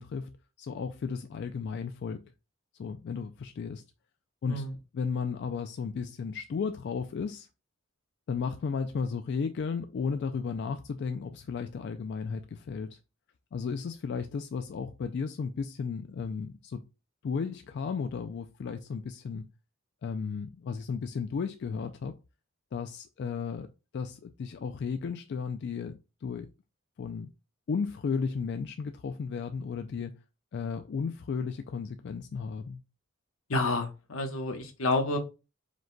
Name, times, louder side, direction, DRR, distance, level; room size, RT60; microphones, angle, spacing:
voice 1, 0.0-2.2 2.8-3.8 4.4-4.7 4.9-7.5 8.3-13.0 13.5-16.8 17.2-19.5 20.0-22.2 22.7-23.7 23.9-26.5 27.0-27.3 27.7-30.1 30.5-32.8, left 5 dB, 55° left, 0.3 m, -34 dB
voice 2, 33.5-35.2, left 2 dB, 85° left, 1.0 m, -29 dB
5.0 x 2.2 x 3.8 m
head